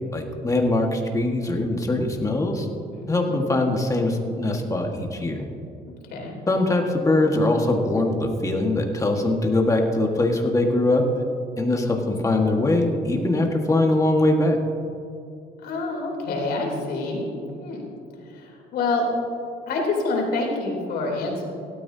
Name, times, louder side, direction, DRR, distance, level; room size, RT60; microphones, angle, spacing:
voice 1, 0.1-2.7 3.1-5.5 6.5-11.0 11.6-14.6, left 2 dB, 20° left, 2 dB, 1.7 m, -22 dB
voice 2, 2.9-3.4 5.9-6.4 15.6-17.3 17.6-17.8 18.3-19.1 19.7-21.4, left 3 dB, 70° left, -1 dB, 3.4 m, -27 dB
17.0 x 13.0 x 2.8 m, 2.7 s
cardioid pair, 110°, 17 cm